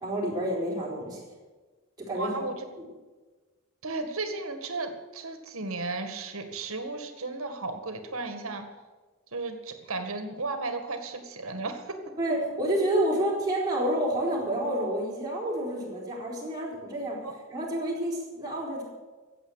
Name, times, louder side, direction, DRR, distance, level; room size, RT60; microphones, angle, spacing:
voice 1, 0.0-1.2 2.0-2.4 12.2-18.8, right 1 dB, 20° right, -5 dB, 4.6 m, -29 dB
voice 2, 2.1-2.7 3.8-8.7 9.3-12.0 17.2-17.3, right 3 dB, 80° right, 7 dB, 1.9 m, -34 dB
15.0 x 8.4 x 8.2 m, 1.3 s
head